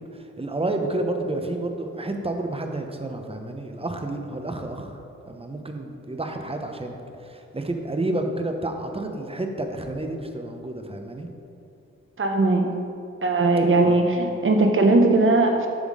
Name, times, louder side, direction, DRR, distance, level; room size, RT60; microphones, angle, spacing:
voice 1, 0.0-5.0 5.3-11.3 13.8-14.0, right 2 dB, 20° right, 4 dB, 0.9 m, -30 dB
voice 2, 12.2-12.7 13.2-15.7, right 2 dB, 45° right, 3 dB, 1.0 m, -19 dB
7.1 x 3.6 x 6.4 m, 2.6 s
cardioid pair, 45°, 29 cm